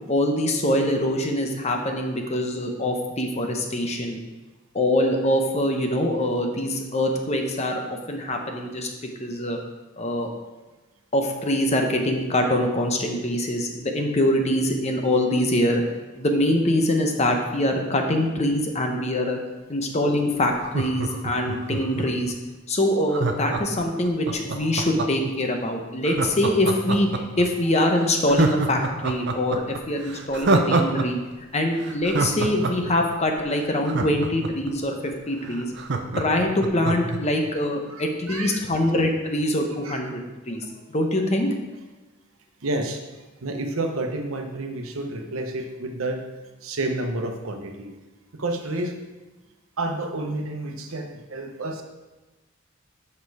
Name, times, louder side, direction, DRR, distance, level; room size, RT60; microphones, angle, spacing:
voice 1, 0.1-4.2 4.7-8.9 9.2-9.6 10.0-10.3 11.1-15.8 16.2-19.4 19.7-22.3 22.7-31.2 31.5-35.7 36.2-40.2 40.5-41.5, left 1 dB, 30° left, 3 dB, 0.8 m, -24 dB
Laughter, 20.6-22.3 23.1-25.3 26.0-27.4 27.8-27.9 28.3-31.1 31.3-31.4 31.8-34.7 35.1-35.2 35.4-37.2 37.6-37.7, right 3 dB, 55° right, 0.6 m, -26 dB
voice 2, 37.9-38.6 39.8-40.0 42.6-43.0 43.4-46.2 46.6-47.9 48.3-49.0 49.8-51.8, right 2 dB, 90° right, 4 dB, 0.9 m, -30 dB
6.6 x 5.4 x 4.7 m, 1.2 s
head